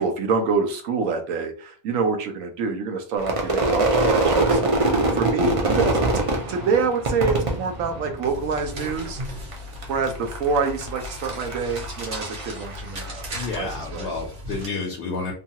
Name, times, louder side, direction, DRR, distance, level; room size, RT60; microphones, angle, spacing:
voice 1, 0.0-6.2 6.5-9.2 9.9-14.1, right 4 dB, 85° right, 5 dB, 1.0 m, -26 dB
Crowd / Fireworks, 3.2-8.6 8.9-9.5 9.8-13.4, right 2 dB, 45° right, 0.4 m, -23 dB
sound 1, 8.2-14.7, left 1 dB, 65° right, 1.3 m, -36 dB
voice 2, 13.3-15.3, left 4 dB, 60° left, -1 dB, 0.9 m, -30 dB
2.9 x 2.3 x 2.8 m, 0.42 s
omnidirectional pair, 1.3 m